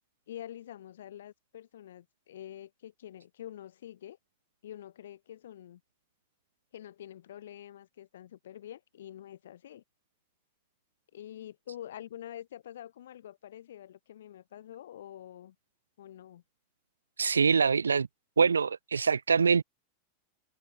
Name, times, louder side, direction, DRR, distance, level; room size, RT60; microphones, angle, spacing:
voice 1, 0.3-4.2 4.6-5.8 6.7-9.8 11.1-15.6 16.0-16.4, left 11 dB, 60° left, 6.0 m, -46 dB
voice 2, 17.2-18.1 18.4-19.6, right 5 dB, 75° right, 0.8 m, -24 dB
figure-of-eight pair, 90°, 0 cm